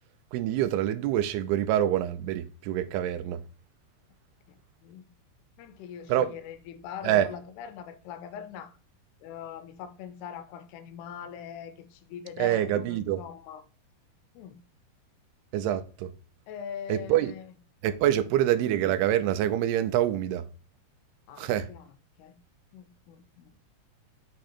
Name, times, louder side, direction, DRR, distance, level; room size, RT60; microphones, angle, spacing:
voice 1, 0.3-3.4 6.1-6.3 7.0-7.3 12.4-13.2 15.5-16.1 16.9-17.3 17.8-20.4 21.4-21.7, right 12 dB, 85° right, 2.6 m, -26 dB
voice 2, 4.5-5.1 5.6-8.7 9.2-13.6 14.3-14.6 16.5-17.4 18.0-18.3 21.3-21.9 22.2-22.4 22.7-23.5, left 8 dB, 85° left, 2.7 m, -42 dB
7.9 x 3.7 x 4.2 m
omnidirectional pair, 4.6 m